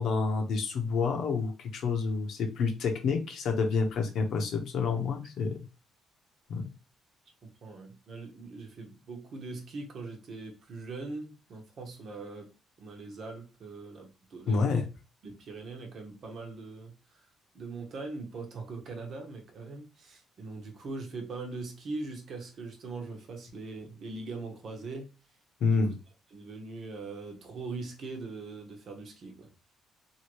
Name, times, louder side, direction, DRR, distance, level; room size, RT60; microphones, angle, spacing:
voice 1, 0.0-5.6 6.5-6.7 14.5-14.8 25.6-25.9, left 4 dB, 75° left, 4 dB, 0.8 m, -28 dB
voice 2, 7.6-12.5 12.8-14.8 15.2-16.9 17.5-25.1 25.6-25.8 26.3-29.5, right 3 dB, 60° right, 3 dB, 1.0 m, -41 dB
2.8 x 2.7 x 3.0 m, 0.29 s
cardioid pair, 90°, 0 cm